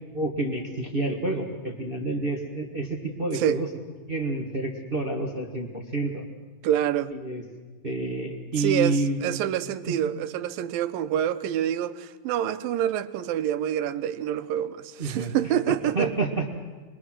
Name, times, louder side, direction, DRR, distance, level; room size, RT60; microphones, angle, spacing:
voice 1, 0.1-3.7 4.1-6.2 7.1-7.4 7.8-9.2 9.9-10.0 15.0-15.3 15.9-16.5, right 2 dB, 40° right, 0.8 m, -28 dB
voice 2, 6.6-7.1 8.6-16.1, right 10 dB, 80° right, 2.6 m, -27 dB
26.5 x 22.0 x 6.3 m
omnidirectional pair, 4.0 m